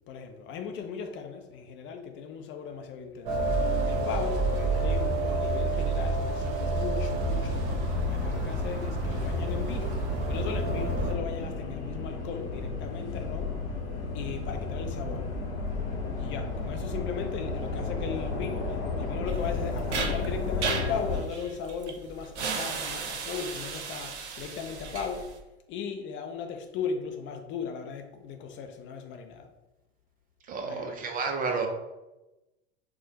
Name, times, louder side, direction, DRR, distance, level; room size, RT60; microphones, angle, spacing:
voice 1, 0.1-3.4 3.9-13.6 14.1-15.3 16.2-25.3 25.7-29.5 30.6-31.1, left 6 dB, 35° left, 5 dB, 0.4 m, -37 dB
sound 1, 3.3-11.1, right 2 dB, 55° right, 1.0 m, -29 dB
metro inside, 7.1-21.2, left 4 dB, 85° left, 1.0 m, -33 dB
sound 2, 19.3-25.4, right 5 dB, 85° right, 0.6 m, -35 dB
voice 2, 30.5-31.7, right 4 dB, 25° right, 3 dB, 0.4 m, -31 dB
4.6 x 2.1 x 2.8 m, 1.0 s
hypercardioid pair, 95°, 33 cm